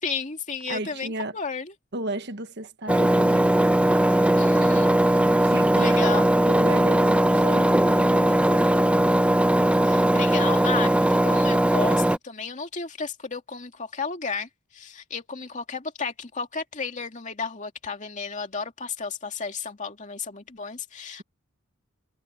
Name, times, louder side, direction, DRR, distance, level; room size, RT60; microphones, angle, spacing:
voice 1, 0.0-1.7 4.4-4.9 5.7-6.3 9.8-21.2, left 5 dB, 35° left, 2.4 m, -33 dB
voice 2, 0.7-1.3 1.9-3.5 5.4-6.1 6.4-8.9, right 2 dB, 55° right, 1.4 m, -34 dB
Engine, 2.9-12.2, right 1 dB, 5° right, 1.0 m, -19 dB
head